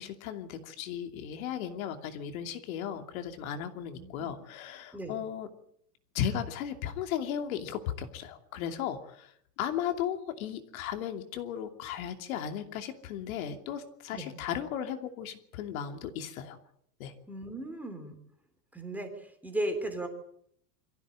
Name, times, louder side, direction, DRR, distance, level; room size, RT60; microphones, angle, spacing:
voice 1, 0.0-5.5 6.1-16.6 17.0-17.1, left 9 dB, 55° left, 6 dB, 2.8 m, -36 dB
voice 2, 4.0-4.3 4.9-5.2 14.1-14.3 17.3-18.2 18.7-20.1, right 1 dB, 5° right, 5 dB, 3.5 m, -36 dB
23.5 x 15.0 x 8.8 m, 0.68 s
supercardioid pair, 150°, 49 cm